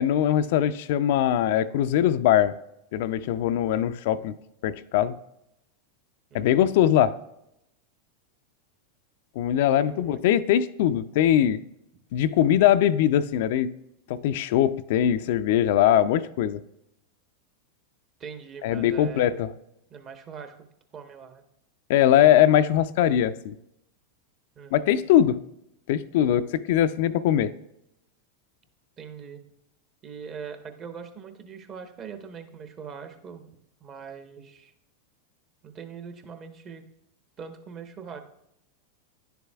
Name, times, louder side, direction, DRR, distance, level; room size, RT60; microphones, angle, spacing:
voice 1, 0.0-2.5 2.9-4.3 4.6-5.2 6.3-7.2 9.4-11.6 12.1-13.7 14.1-16.6 18.6-19.5 21.9-23.6 24.7-25.4 25.9-27.5, left 11 dB, 65° left, 0.3 m, -21 dB
voice 2, 6.3-6.6 9.8-10.2 18.2-19.4 19.9-20.7 20.9-21.4 24.6-25.0 29.0-29.4 30.0-33.4 33.8-34.7 35.6-36.8 37.4-38.2, right 6 dB, 35° right, 0.9 m, -42 dB
10.5 x 6.9 x 2.3 m
hypercardioid pair, 100°, 0 cm